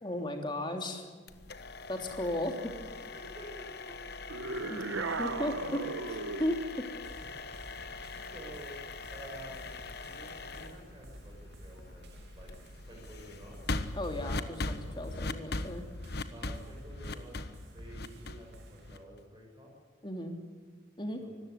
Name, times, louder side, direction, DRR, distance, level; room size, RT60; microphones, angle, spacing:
voice 1, 0.0-1.1 1.9-2.7 4.7-4.8 5.2-5.5 6.4-6.6 13.9-15.8 20.0-20.4 21.0-21.2, left 1 dB, 25° left, 4 dB, 3.0 m, -35 dB
sound 1, 1.3-19.2, left 2 dB, 55° left, 1.3 m, -41 dB
voice 2, 3.1-4.0 4.4-5.0 5.7-5.8 7.3-7.7 8.0-9.6 10.0-12.1 12.3-12.5 12.8-13.6 16.3-19.7 21.2-21.3, right 1 dB, 20° right, -1 dB, 6.4 m, -50 dB
sound 2, 4.3-6.6, right 3 dB, 85° right, 1.2 m, -36 dB
sound 3, 7.0-19.0, equal, 55° right, 2.8 m, -53 dB
25.0 x 15.0 x 10.0 m, 1.5 s
head